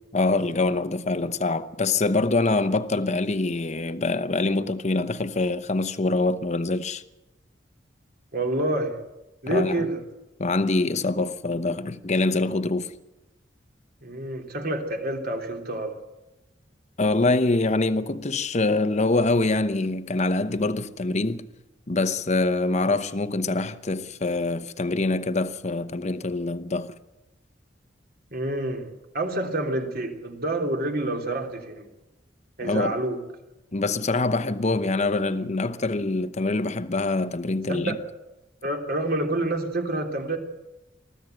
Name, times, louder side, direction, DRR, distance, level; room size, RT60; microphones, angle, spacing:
voice 1, 0.1-7.0 9.5-9.9 10.4-12.9 17.0-21.5 21.9-27.0 32.6-33.0 33.7-38.0, left 2 dB, 40° left, 0.9 m, -25 dB
voice 2, 8.3-9.0 9.4-10.0 14.0-16.0 28.3-28.9 29.1-31.9 32.6-33.2 37.7-37.9 38.6-40.4, right 1 dB, 55° right, 3.3 m, -28 dB
24.5 x 15.0 x 8.0 m
head